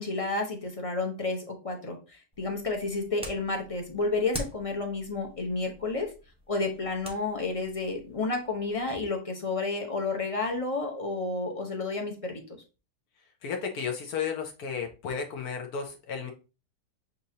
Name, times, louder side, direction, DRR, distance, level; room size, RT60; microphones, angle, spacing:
voice 1, 0.0-6.1 6.5-12.4, left 3 dB, 30° left, 2 dB, 0.6 m, -31 dB
sound 1, 2.3-9.1, equal, 5° right, 0.7 m, -45 dB
voice 2, 13.4-16.3, left 6 dB, 70° left, 3 dB, 1.2 m, -33 dB
7.3 x 2.7 x 2.7 m, 0.32 s
omnidirectional pair, 1.7 m